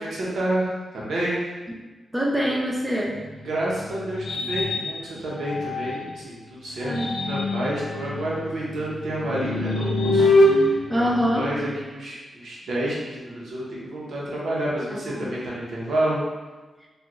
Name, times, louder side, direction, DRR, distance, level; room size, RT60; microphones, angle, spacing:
voice 1, 0.0-1.4 3.4-16.2, right 1 dB, 70° right, -6 dB, 1.1 m, -29 dB
voice 2, 2.1-3.2 6.8-7.1 10.9-11.5 14.9-15.3, equal, 10° right, -2 dB, 0.5 m, -24 dB
sound 1, 3.0-6.2 6.7-11.9, left 1 dB, 80° left, 0.5 m, -25 dB
4.8 x 2.5 x 3.1 m, 1.3 s
wide cardioid pair, 165°, 0 cm